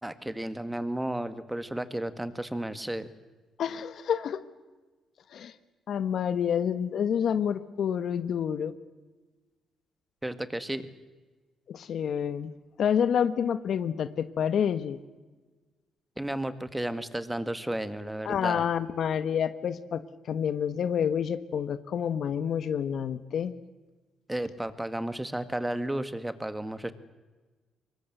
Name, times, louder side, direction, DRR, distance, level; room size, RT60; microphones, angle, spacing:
voice 1, 0.0-3.1 10.2-10.9 16.2-18.7 24.3-26.9, right 1 dB, 10° right, 12 dB, 1.9 m, -33 dB
voice 2, 3.6-4.4 5.3-5.5 5.9-8.7 11.7-12.5 12.8-15.0 18.2-20.0 20.3-23.5, left 8 dB, 65° left, 12 dB, 1.2 m, -28 dB
25.0 x 22.0 x 7.9 m, 1.3 s
cardioid pair, 90°, 0 cm